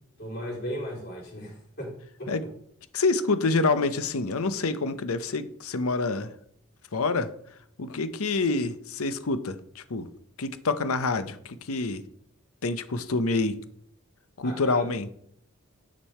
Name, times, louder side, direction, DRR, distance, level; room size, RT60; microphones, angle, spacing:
voice 1, 0.2-1.9 2.2-2.3 14.4-14.8, equal, 50° left, 3.4 m, -36 dB
voice 2, 2.9-6.3 6.9-7.3 7.8-10.1 10.4-12.0 12.6-13.6 14.4-15.1, left 3 dB, 85° left, 0.8 m, -27 dB
10.0 x 5.4 x 4.4 m
head